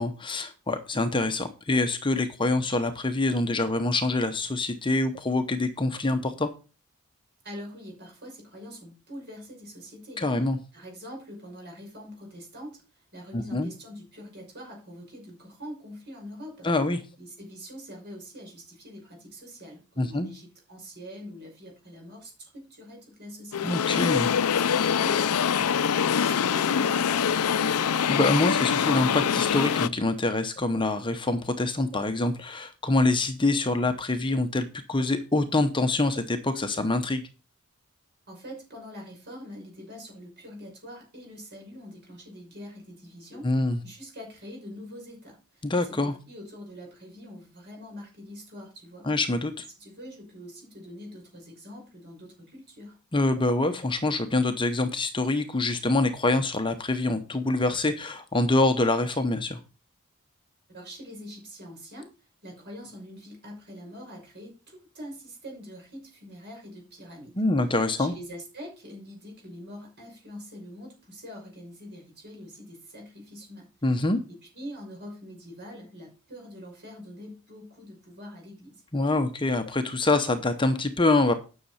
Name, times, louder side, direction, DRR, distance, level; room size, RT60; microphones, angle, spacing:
voice 1, 0.0-6.5 10.2-10.6 13.3-13.7 16.6-17.0 20.0-20.3 23.6-24.3 28.1-37.2 43.4-43.8 45.6-46.2 49.0-49.7 53.1-59.6 67.4-68.1 73.8-74.2 78.9-81.3, left 2 dB, 20° left, 8 dB, 0.8 m, -25 dB
voice 2, 7.4-10.2 10.7-16.7 17.2-23.8 38.3-49.1 49.8-53.0 60.7-62.1 62.4-67.4 68.0-78.8, equal, 50° right, 0 dB, 6.0 m, -44 dB
sound 1, 23.5-29.9, left 7 dB, 80° left, 0.5 m, -24 dB
10.0 x 6.5 x 5.6 m, 0.32 s
head